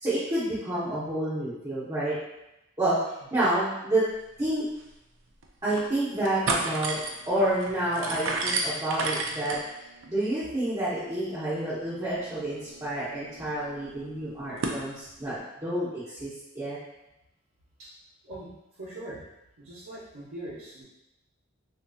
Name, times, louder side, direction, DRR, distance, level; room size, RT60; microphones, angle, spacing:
voice 1, 0.0-2.1 2.8-3.0 3.3-4.0 4.4-4.6 5.6-7.0 7.3-9.6 10.1-16.3 16.5-16.8, right 1 dB, 20° right, -13 dB, 0.9 m, -29 dB
sound 1, 4.4-4.5 4.8-4.9 5.4-5.9 6.2-14.8, right 3 dB, 65° right, 0.4 m, -34 dB
voice 2, 18.2-19.2 19.6-20.8, right 1 dB, 85° right, -10 dB, 0.9 m, -42 dB
3.8 x 2.7 x 2.3 m, 0.89 s
head